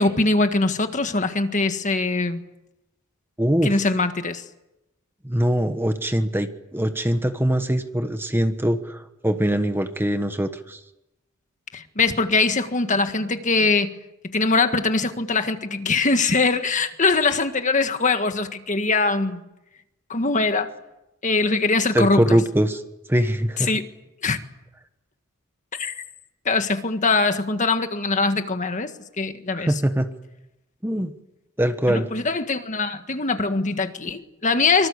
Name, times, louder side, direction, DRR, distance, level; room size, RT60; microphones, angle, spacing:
voice 1, 0.0-2.4 3.6-4.4 11.7-13.9 14.2-19.4 20.1-20.7 21.2-22.4 23.6-23.9 24.2-24.4 25.7-25.9 26.4-28.9 29.2-29.7 31.9-34.9, left 3 dB, 35° left, 8 dB, 1.7 m, -22 dB
voice 2, 3.4-3.7 5.2-10.8 21.9-22.8 23.1-23.7 29.5-30.1 30.8-31.1 31.6-32.1, equal, 10° right, 8 dB, 1.3 m, -22 dB
25.5 x 24.5 x 8.2 m, 0.93 s
head